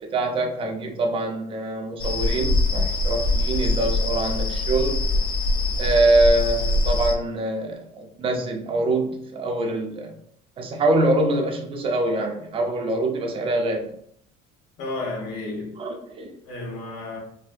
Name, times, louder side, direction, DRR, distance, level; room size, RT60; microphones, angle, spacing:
voice 1, 0.0-5.0 5.8-10.1 10.6-13.9 15.8-16.3, right 2 dB, 30° right, 0.6 m, -24 dB
sound 1, 2.0-7.1, left 2 dB, 30° left, 0.6 m, -23 dB
voice 2, 14.8-15.7 16.4-17.2, left 2 dB, 85° left, 1.4 m, -32 dB
4.3 x 2.1 x 2.6 m
cardioid pair, 120°, 17 cm